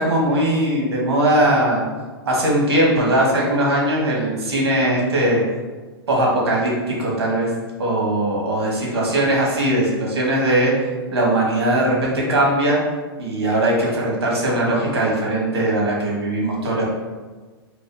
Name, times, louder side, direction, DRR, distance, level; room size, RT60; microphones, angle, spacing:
voice 1, 0.0-1.8 2.2-5.4 6.1-7.5 7.8-10.7 11.1-12.8 13.2-16.8, right 1 dB, 85° right, -3 dB, 1.3 m, -20 dB
4.8 x 2.3 x 2.6 m, 1.4 s
hypercardioid pair, 130°, 13 cm